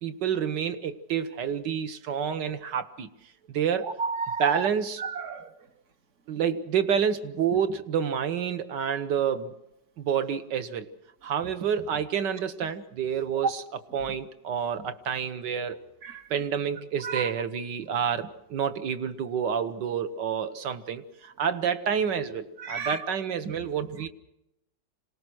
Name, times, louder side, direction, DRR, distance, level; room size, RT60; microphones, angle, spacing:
voice 1, 0.0-3.1 3.5-3.9 4.4-5.0 6.3-9.5 10.0-10.9 11.2-13.6 13.9-15.8 16.3-24.1, right 7 dB, 65° right, 10 dB, 1.7 m, -28 dB
voice 2, 3.8-4.7 5.0-5.5 16.0-16.2 17.0-17.2 22.6-23.0, right 4 dB, 45° right, 9 dB, 1.3 m, -32 dB
26.5 x 18.5 x 6.3 m, 0.84 s
omnidirectional pair, 2.1 m